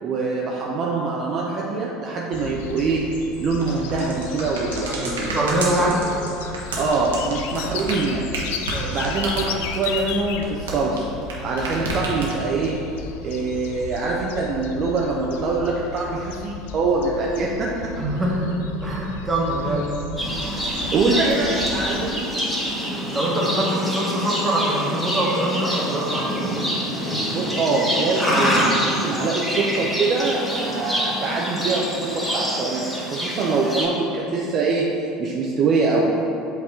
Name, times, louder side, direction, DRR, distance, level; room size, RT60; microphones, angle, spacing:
voice 1, 0.0-3.0 3.4-5.4 6.8-8.3 8.9-11.1 11.4-12.8 13.2-17.7 18.3-18.5 19.6-19.8 20.5-20.6 20.9-22.4 27.3-34.9 35.2-36.1, right 3 dB, 45° right, -3 dB, 0.6 m, -24 dB
sound 1, 2.3-22.1, left 6 dB, 65° left, 0.3 m, -35 dB
sound 2, 3.6-11.3 11.6-12.6, right 3 dB, 75° right, 1.0 m, -30 dB
voice 2, 4.9-6.0 8.6-9.0 17.9-20.2 23.1-26.3, right 1 dB, 20° right, -4 dB, 1.3 m, -24 dB
Livestock farm animals working animals, 20.2-33.9, equal, 10° left, 1.4 m, -26 dB
7.9 x 3.4 x 3.7 m, 2.8 s
figure-of-eight pair, 70°, 0 cm